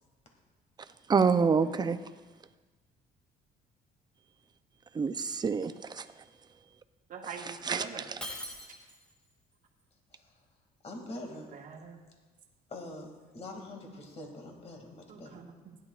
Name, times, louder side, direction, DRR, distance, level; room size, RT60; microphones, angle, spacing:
voice 1, 1.1-2.0 4.9-6.2 7.5-8.0, right 5 dB, 25° right, 10 dB, 0.6 m, -27 dB
voice 2, 7.1-8.1 11.5-12.0 15.1-15.8, right 6 dB, 55° right, 0 dB, 1.7 m, -43 dB
Shatter, 8.2-9.2, equal, 5° left, 2.0 m, -42 dB
voice 3, 10.8-11.5 12.7-15.4, left 1 dB, 40° left, 2 dB, 2.3 m, -44 dB
15.5 x 11.0 x 2.4 m, 1.3 s
cardioid pair, 110°, 17 cm